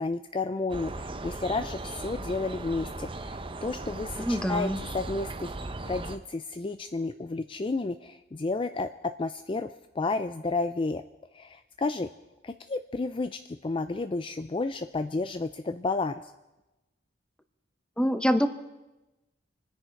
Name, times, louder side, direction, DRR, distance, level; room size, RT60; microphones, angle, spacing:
voice 1, 0.0-5.5 5.8-8.9 9.2-11.0 11.3-12.1 12.4-16.2, left 3 dB, 25° left, 9 dB, 0.4 m, -31 dB
sound 1, 0.7-6.2, right 2 dB, 25° right, 0.7 m, -38 dB
voice 2, 4.2-4.8 18.0-18.5, equal, 5° left, 9 dB, 0.8 m, -25 dB
27.0 x 10.0 x 4.6 m, 1.0 s
head